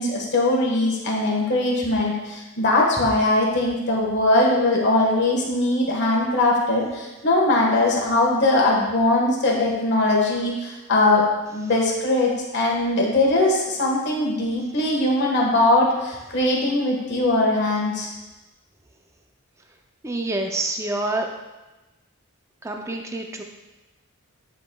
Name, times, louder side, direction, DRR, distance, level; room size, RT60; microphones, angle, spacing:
voice 1, 0.0-11.2 11.5-18.1, left 2 dB, 50° left, -2 dB, 1.5 m, -21 dB
voice 2, 20.0-21.3 22.6-23.4, right 2 dB, 15° right, 3 dB, 0.5 m, -27 dB
10.0 x 4.9 x 2.3 m, 1.1 s
head